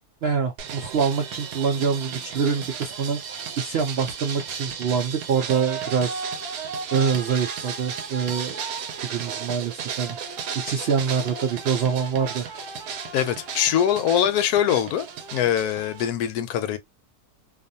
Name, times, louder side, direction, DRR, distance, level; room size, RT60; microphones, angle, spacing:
voice 1, 0.2-3.2 3.6-6.3 6.9-8.6 9.0-10.2 10.5-12.5, right 6 dB, 70° right, 0.6 m, -25 dB
sound 1, 0.6-16.1, right 6 dB, 90° right, 1.2 m, -34 dB
voice 2, 13.1-15.1 15.3-16.8, left 10 dB, 80° left, 1.1 m, -22 dB
2.5 x 2.4 x 2.6 m
omnidirectional pair, 1.6 m